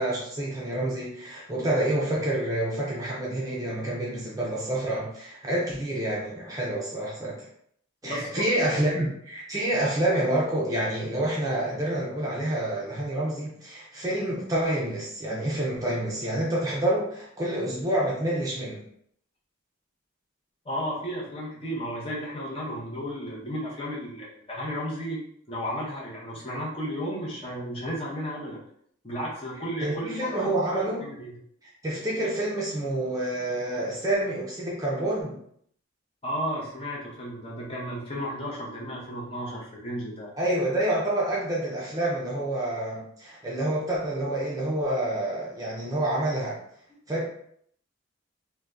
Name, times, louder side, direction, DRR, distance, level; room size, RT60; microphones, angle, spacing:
voice 1, 0.0-7.5 8.0-18.8 29.8-31.0 31.6-35.4 40.4-46.6 47.1-47.2, right 1 dB, 15° right, -4 dB, 0.5 m, -28 dB
voice 2, 8.0-8.4 8.8-8.9 20.6-25.2 25.5-28.6 29.0-30.5 31.0-31.4 36.2-40.3, equal, 30° left, -4 dB, 0.7 m, -33 dB
2.6 x 2.1 x 3.4 m, 0.67 s
head